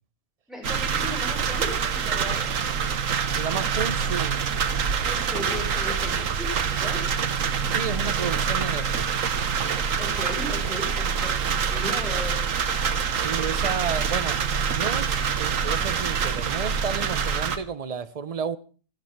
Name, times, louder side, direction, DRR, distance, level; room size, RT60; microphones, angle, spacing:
voice 1, 0.5-2.5 5.1-7.0 10.0-12.4, equal, ahead, 5.5 m, -36 dB
sound 1, 0.6-17.6, right 6 dB, 70° right, 1.5 m, -26 dB
voice 2, 3.3-4.5 7.7-9.2 13.1-14.4 14.7-18.6, right 6 dB, 35° right, 0.7 m, -32 dB
14.5 x 13.0 x 5.9 m
omnidirectional pair, 1.4 m